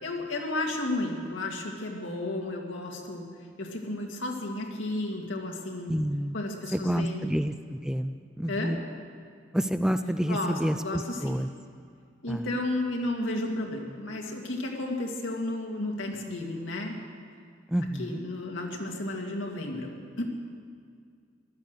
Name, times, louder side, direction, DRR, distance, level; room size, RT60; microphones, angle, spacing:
voice 1, 0.0-3.2 3.6-5.9 6.3-7.2 8.5-8.7 10.3-11.4 12.2-17.0 18.0-19.9 20.2-20.3, left 2 dB, 70° left, 0 dB, 2.2 m, -33 dB
voice 2, 5.9-6.4 6.7-8.8 9.5-11.5 12.3-12.5 17.7-18.2, equal, 5° right, 9 dB, 0.3 m, -29 dB
15.5 x 12.0 x 6.6 m, 2.2 s
head